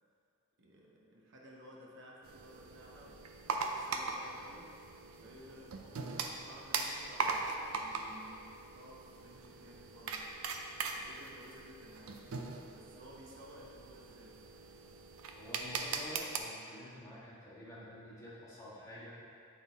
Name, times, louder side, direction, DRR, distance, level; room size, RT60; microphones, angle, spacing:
voice 1, 0.6-4.8 5.2-10.3 10.9-14.4, equal, 60° right, -2 dB, 0.8 m, -56 dB
sound 1, 2.2-16.4, right 4 dB, 85° right, 0.5 m, -41 dB
voice 2, 15.3-19.2, equal, 15° left, -9 dB, 1.4 m, -49 dB
8.4 x 3.7 x 4.0 m, 2.3 s
head